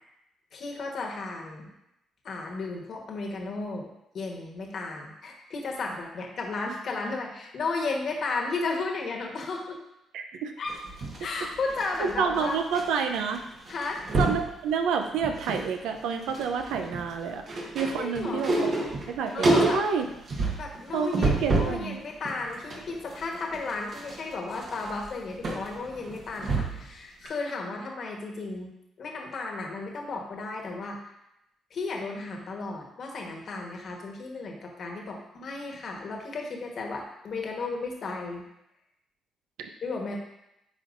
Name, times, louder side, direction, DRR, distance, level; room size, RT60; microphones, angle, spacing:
voice 1, 0.5-1.7 2.2-9.8 10.6-10.7 11.2-12.6 13.7-14.0 18.0-18.4 19.3-19.8 20.6-21.3 21.6-28.7 29.0-31.0 31.7-38.4 39.8-40.2, left 3 dB, 55° left, 1 dB, 1.3 m, -34 dB
voice 2, 10.1-10.5 12.0-13.5 14.2-17.4 17.7-18.7 19.1-20.1 20.9-22.0 39.6-39.7, right 6 dB, 90° right, 5 dB, 0.6 m, -29 dB
sound 1, 10.7-12.8 13.1-13.4 13.7-14.5 15.0-15.7 16.0-21.8 22.3-26.9 27.3-27.4, right 2 dB, 55° right, 1.4 m, -29 dB
9.5 x 4.3 x 2.6 m, 0.85 s
cardioid pair, 90°, 0 cm